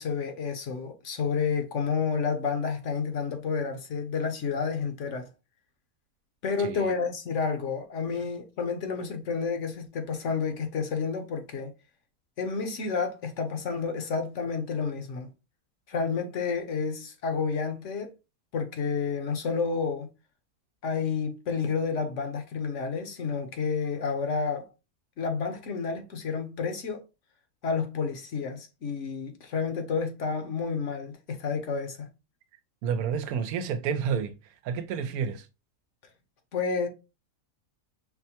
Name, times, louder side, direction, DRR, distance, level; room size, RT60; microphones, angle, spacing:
voice 1, 0.0-5.3 6.4-11.7 12.4-15.3 15.9-18.1 18.5-20.1 20.8-24.7 25.2-27.0 27.6-32.1 36.5-36.9, left 5 dB, 60° left, 1.0 m, -30 dB
voice 2, 6.6-6.9 32.8-34.4 34.6-35.5, right 7 dB, 90° right, 1.1 m, -30 dB
5.6 x 2.1 x 2.7 m
omnidirectional pair, 1.5 m